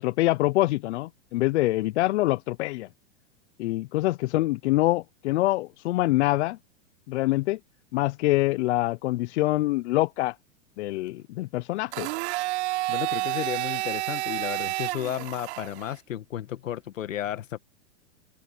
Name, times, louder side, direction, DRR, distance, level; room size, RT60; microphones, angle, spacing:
voice 1, 0.0-2.9 3.6-6.6 7.1-7.6 7.9-10.4 10.8-12.1, left 18 dB, 65° left, 0.7 m, -25 dB
Domestic sounds home sounds, 11.9-15.9, right 20 dB, 60° right, 4.2 m, -30 dB
voice 2, 12.9-17.6, left 11 dB, 85° left, 1.9 m, -33 dB
open air
hypercardioid pair, 130°, 38 cm